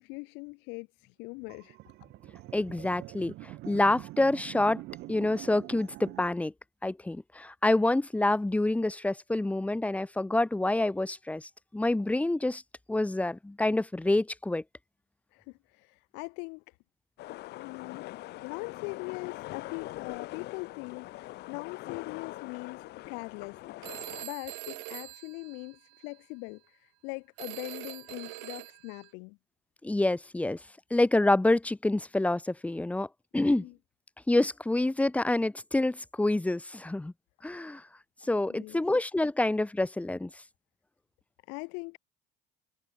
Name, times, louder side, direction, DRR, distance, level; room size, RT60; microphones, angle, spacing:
voice 1, 0.0-1.8 15.3-16.7 17.5-18.1 18.4-29.4 33.5-33.7 38.5-38.8 41.5-42.0, left 32 dB, 85° left, 6.8 m, -41 dB
sound 1, 1.5-6.3, right 18 dB, 70° right, 6.7 m, -45 dB
voice 2, 2.5-4.8 5.1-6.5 6.8-12.6 12.9-14.6 29.8-30.6 30.9-33.1 33.3-33.7 34.3-37.1 37.4-37.8 38.3-40.3, left 2 dB, 5° left, 1.8 m, -27 dB
sound 2, 17.2-24.2, left 17 dB, 65° left, 7.9 m, -42 dB
Telephone, 23.8-26.2 27.4-29.1, right 38 dB, 85° right, 1.9 m, -43 dB
cardioid pair, 110°, 18 cm